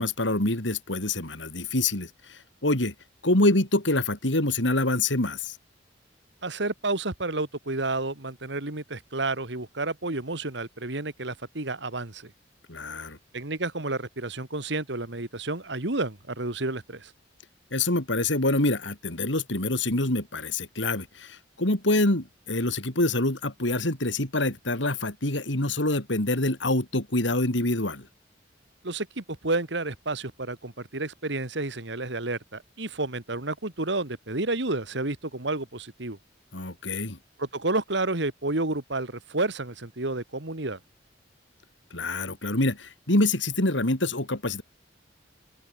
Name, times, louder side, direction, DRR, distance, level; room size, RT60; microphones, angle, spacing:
voice 1, 0.0-2.9 3.2-5.6 12.7-13.2 17.7-28.1 36.5-37.2 41.9-44.6, left 2 dB, 75° left, 4.0 m, -26 dB
voice 2, 6.4-12.3 13.3-17.1 28.8-36.2 37.4-40.8, right 2 dB, 65° right, 2.4 m, -30 dB
open air
head